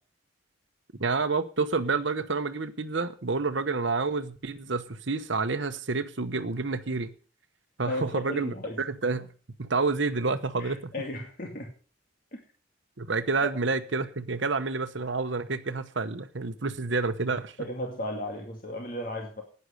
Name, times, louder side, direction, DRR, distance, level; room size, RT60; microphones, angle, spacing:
voice 1, 1.0-7.1 7.8-9.3 9.6-10.9 13.0-17.6, right 4 dB, 75° right, 1.0 m, -29 dB
voice 2, 7.9-8.8 10.6-11.7 12.3-12.4 13.4-13.5 17.6-19.4, left 1 dB, 45° left, 2.3 m, -35 dB
11.5 x 9.6 x 6.6 m
head